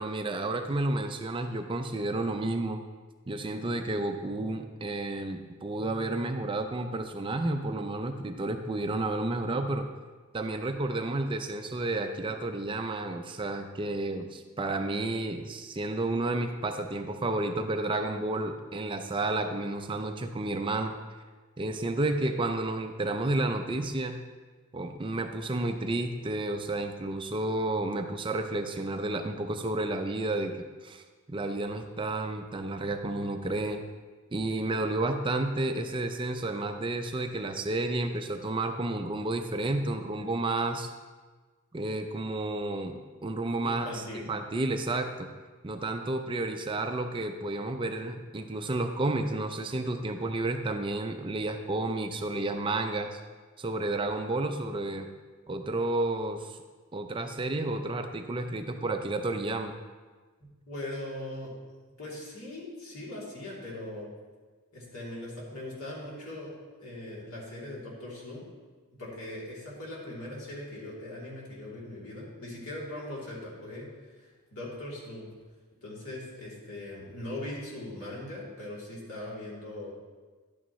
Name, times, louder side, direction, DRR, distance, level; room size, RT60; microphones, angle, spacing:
voice 1, 0.0-2.8 3.3-9.9 10.3-20.9 21.6-24.2 24.7-31.0 31.3-33.8 34.3-40.9 41.7-45.3 45.6-53.2 53.6-55.1 55.5-56.6 56.9-59.7, right 2 dB, 25° right, 6 dB, 0.4 m, -31 dB
voice 2, 43.6-44.2 60.7-61.5 62.0-64.1 64.7-66.5 66.8-68.4 69.0-73.9 74.2-75.3 75.8-79.9, left 1 dB, 75° left, -6 dB, 2.9 m, -40 dB
11.0 x 8.6 x 3.1 m, 1.4 s
head